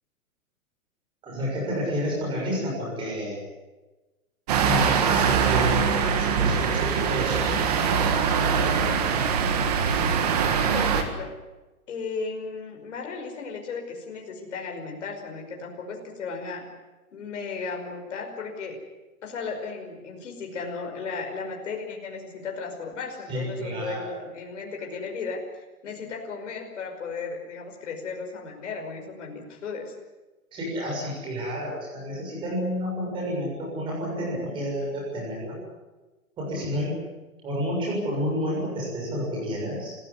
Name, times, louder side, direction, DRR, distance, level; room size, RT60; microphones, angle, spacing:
voice 1, 1.2-3.4 4.6-8.9 23.3-24.1 30.5-35.6 36.4-36.9 37.4-40.0, equal, 10° right, -2 dB, 6.7 m, -30 dB
sound 1, 4.5-11.0, right 6 dB, 25° right, 1.8 m, -23 dB
voice 2, 10.7-11.4 11.9-16.7 17.1-18.8 19.2-25.4 25.8-29.9, left 4 dB, 55° left, 2 dB, 5.5 m, -35 dB
26.0 x 15.5 x 9.8 m, 1.1 s
hypercardioid pair, 175°, 44 cm